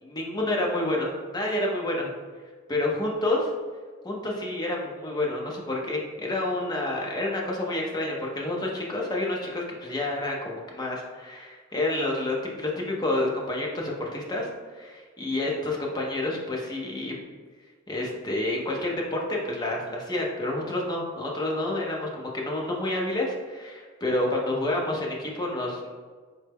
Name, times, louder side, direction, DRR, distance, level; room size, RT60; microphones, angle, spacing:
voice 1, 0.0-2.1 2.7-3.5 4.0-14.5 14.7-17.1 17.9-25.9, left 1 dB, 20° left, -2 dB, 0.5 m, -29 dB
3.9 x 2.2 x 3.4 m, 1.5 s
head